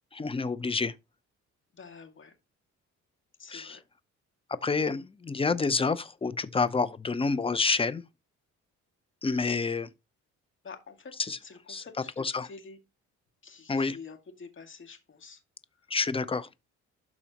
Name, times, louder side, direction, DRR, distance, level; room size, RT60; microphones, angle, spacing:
voice 1, 0.1-0.9 3.5-3.8 4.6-8.0 9.2-9.9 11.2-11.4 11.7-11.8 12.2-12.5 13.7-14.0 15.9-16.5, left 4 dB, 20° left, 0.7 m, -28 dB
voice 2, 1.7-2.3 3.4-3.8 10.6-11.1 11.4-12.8 13.4-15.4 15.7-15.9, left 5 dB, 40° left, 2.2 m, -48 dB
12.5 x 4.1 x 2.9 m
cardioid pair, 90°, 30 cm